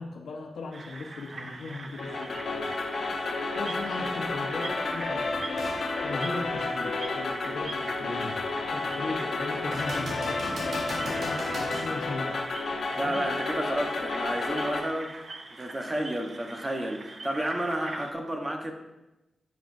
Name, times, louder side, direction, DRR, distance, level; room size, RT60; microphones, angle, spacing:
voice 1, 0.0-2.7 3.5-5.4 6.0-8.4 8.7-10.6 11.0-12.4 12.9-13.2 17.9-18.0, left 3 dB, 90° left, 1 dB, 1.3 m, -38 dB
sound 1, 0.7-18.1, right 3 dB, 50° right, 0.8 m, -43 dB
sound 2, 2.0-14.8, left 3 dB, 65° left, 1.0 m, -31 dB
sound 3, 5.6-5.8 6.4-6.5 9.7-11.9 15.6-15.7, equal, 75° right, 2.6 m, -37 dB
voice 2, 13.0-15.3 15.5-18.7, right 1 dB, 25° right, 3 dB, 1.2 m, -31 dB
9.8 x 7.4 x 2.7 m, 0.97 s
cardioid pair, 80°, 0 cm